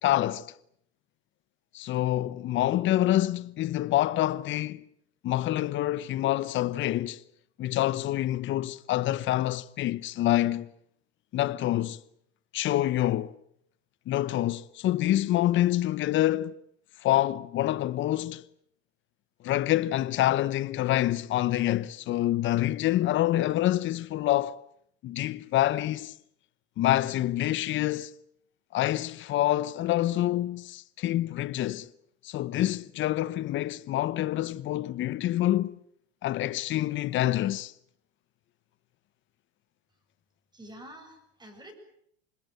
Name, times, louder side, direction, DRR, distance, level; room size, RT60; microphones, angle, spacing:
voice 1, 0.0-0.5 1.7-4.8 5.2-7.2 7.6-10.7 11.3-12.0 12.5-13.4 14.1-16.6 17.0-18.4 19.4-24.6 25.0-26.1 26.8-28.1 28.7-31.9 32.2-35.7 36.2-37.7, left 14 dB, 40° left, 1.0 m, -26 dB
voice 2, 40.5-41.7, right 1 dB, 15° right, 8.0 m, -47 dB
26.5 x 20.5 x 9.3 m
hypercardioid pair, 105°, 31 cm